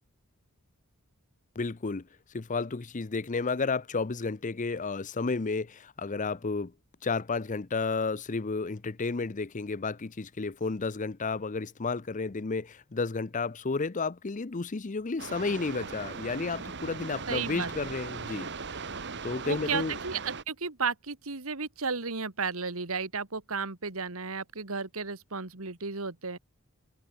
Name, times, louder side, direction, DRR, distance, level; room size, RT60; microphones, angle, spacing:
voice 1, 1.6-2.1 2.3-6.7 7.0-18.5 19.2-20.0, left 4 dB, 35° left, 0.6 m, -32 dB
sound 1, 15.2-20.4, right 4 dB, 55° right, 2.1 m, -39 dB
voice 2, 17.3-17.9 19.4-26.4, right 5 dB, 70° right, 2.0 m, -33 dB
head